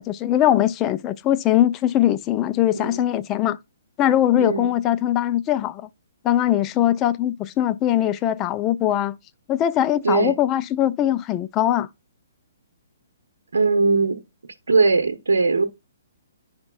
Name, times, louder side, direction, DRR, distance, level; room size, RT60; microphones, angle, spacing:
voice 1, 0.0-3.6 4.0-5.9 6.2-9.2 9.5-11.9, left 12 dB, 25° left, 0.4 m, -21 dB
voice 2, 4.4-4.7 10.0-10.3 13.5-14.2 14.7-15.6, right 3 dB, 85° right, 0.8 m, -20 dB
10.5 x 5.1 x 2.2 m
hypercardioid pair, 140°, 0 cm